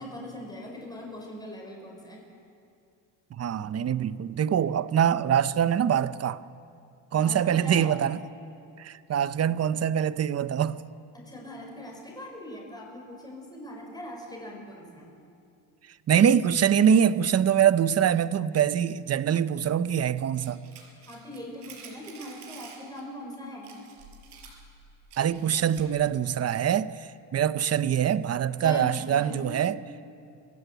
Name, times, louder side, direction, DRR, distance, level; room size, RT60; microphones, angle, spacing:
voice 1, 0.0-2.2 7.2-7.9 11.1-15.1 21.1-23.7 28.6-29.7, left 1 dB, 10° left, 5.4 m, -40 dB
voice 2, 3.3-6.4 7.1-8.2 8.8-10.8 16.1-20.6 25.2-29.8, right 9 dB, 35° right, 0.8 m, -24 dB
sound 1, 20.4-23.0 23.3-23.4 23.6-26.0, right 6 dB, 65° right, 5.5 m, -49 dB
26.0 x 16.0 x 8.2 m
cardioid pair, 110°, 43 cm